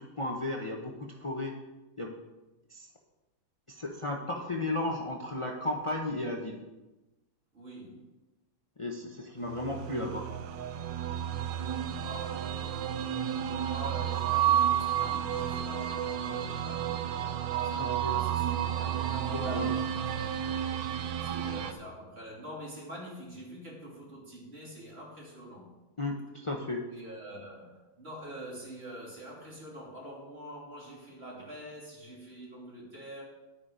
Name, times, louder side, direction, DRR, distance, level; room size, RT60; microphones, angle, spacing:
voice 1, 0.0-1.5 2.0-2.2 2.7-2.9 3.7-6.6 8.8-10.3 17.7-18.2 19.3-19.8 26.0-26.8, left 2 dB, 40° left, 1 dB, 0.4 m, -34 dB
voice 2, 7.5-8.0 12.0-20.1 21.2-25.7 26.9-33.2, equal, 30° right, -3 dB, 3.1 m, -46 dB
sound 1, 9.4-21.7, right 9 dB, 70° right, 1.2 m, -31 dB
11.0 x 8.5 x 5.1 m, 1.0 s
omnidirectional pair, 2.2 m